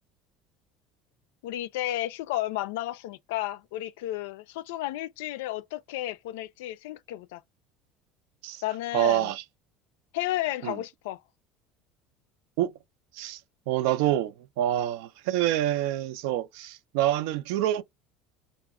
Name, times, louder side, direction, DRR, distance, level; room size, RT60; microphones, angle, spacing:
voice 1, 1.4-7.4 8.6-9.3 10.1-11.2, left 15 dB, 90° left, 0.3 m, -32 dB
voice 2, 8.9-9.4 10.6-10.8 12.6-12.7 13.1-13.4 13.7-17.8, right 13 dB, 80° right, 0.4 m, -26 dB
2.2 x 2.0 x 3.5 m
supercardioid pair, 110°, 0 cm